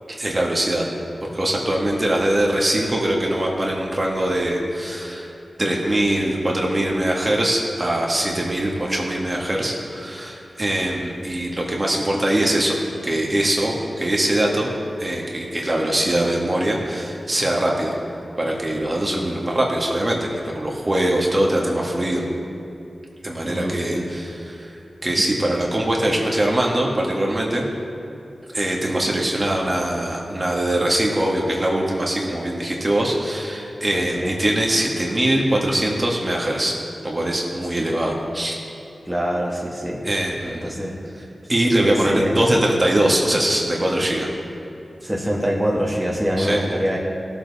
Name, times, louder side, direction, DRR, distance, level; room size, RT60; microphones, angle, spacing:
voice 1, 0.1-0.9 1.3-5.3 5.6-12.8 13.0-14.7 15.0-17.9 18.4-22.2 23.2-24.8 25.0-27.7 28.5-36.7 37.0-38.6 40.0-40.7 41.5-44.3 46.4-46.6, right 1 dB, 35° right, -2 dB, 1.9 m, -22 dB
voice 2, 23.4-24.0 33.9-34.4 37.8-37.9 39.1-40.0 40.5-40.9 41.8-42.4 45.0-47.0, equal, 10° right, -3 dB, 1.9 m, -24 dB
17.5 x 7.4 x 4.2 m, 2.8 s
cardioid pair, 55°, 0 cm